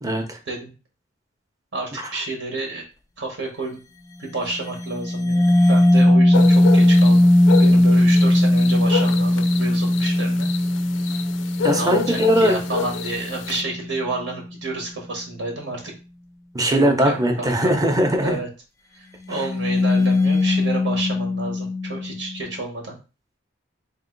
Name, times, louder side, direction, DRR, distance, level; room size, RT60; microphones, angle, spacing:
voice 1, 0.0-0.4 11.6-12.6 16.5-18.4, right 1 dB, 20° right, 4 dB, 0.7 m, -20 dB
voice 2, 1.7-2.8 3.2-3.8 4.2-7.3 7.6-10.5 11.7-15.9 16.7-17.7 18.2-18.5 18.9-22.9, right 2 dB, 85° right, 0 dB, 1.4 m, -30 dB
sound 1, 4.6-13.9 19.5-22.0, left 1 dB, 20° left, 0.4 m, -18 dB
sound 2, 6.3-13.6, left 6 dB, 85° left, 0.4 m, -29 dB
3.7 x 2.7 x 3.9 m, 0.31 s
head